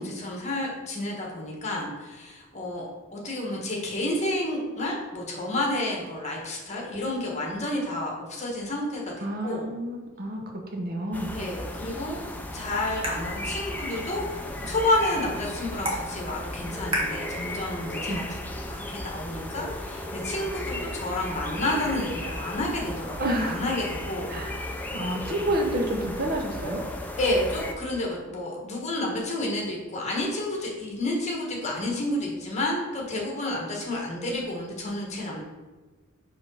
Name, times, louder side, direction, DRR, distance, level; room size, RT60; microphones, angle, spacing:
voice 1, 0.0-9.7 11.3-12.2 12.5-18.4 18.7-24.9 27.2-35.4, left 1 dB, 35° left, -1 dB, 1.3 m, -30 dB
voice 2, 9.2-11.3 18.1-18.2 23.2-23.6 24.3-24.7 24.9-26.9, right 1 dB, 45° right, 2 dB, 0.8 m, -29 dB
sound 1, 11.1-27.7, left 1 dB, 10° left, 0.5 m, -35 dB
sound 2, 12.1-18.2, equal, 30° right, 1.3 m, -37 dB
5.1 x 4.0 x 5.5 m, 1.3 s
head